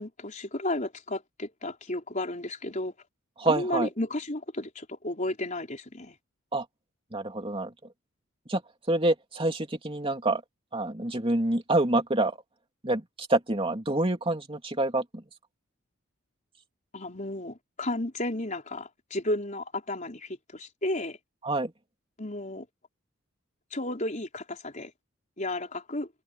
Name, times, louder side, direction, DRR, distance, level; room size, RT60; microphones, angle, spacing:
voice 1, 0.0-2.9 3.4-6.1 16.9-21.2 22.2-22.7 23.7-24.9 25.4-26.1, left 1 dB, 35° left, 4.6 m, -33 dB
voice 2, 3.4-3.9 6.5-6.6 7.1-7.7 8.5-8.6 8.9-10.4 10.7-12.4 12.8-15.0 21.4-21.7, right 2 dB, 25° right, 2.8 m, -27 dB
open air
head